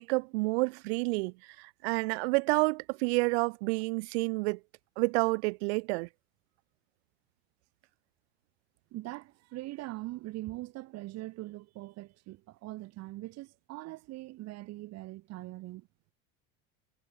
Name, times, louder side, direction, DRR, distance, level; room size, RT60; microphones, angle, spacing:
voice 1, 0.0-4.6 5.0-6.1, right 28 dB, 75° right, 0.5 m, -29 dB
voice 2, 8.9-15.9, right 18 dB, 50° right, 5.4 m, -42 dB
supercardioid pair, 130°, 32 cm